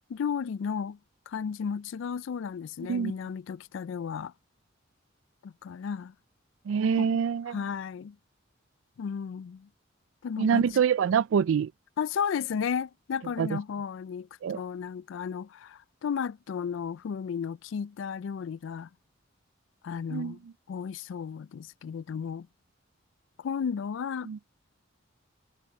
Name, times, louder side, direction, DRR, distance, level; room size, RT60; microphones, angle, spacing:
voice 1, 0.1-1.0 1.3-4.3 5.4-6.1 7.0-7.1 7.5-8.2 9.0-9.7 10.2-10.7 12.0-18.9 19.8-20.4 20.7-22.5 23.4-24.3, left 7 dB, 70° left, 0.3 m, -34 dB
voice 2, 6.7-7.6 10.4-11.7 13.4-13.6 14.4-14.6 20.1-20.4 24.3-24.4, right 7 dB, 75° right, 0.3 m, -25 dB
head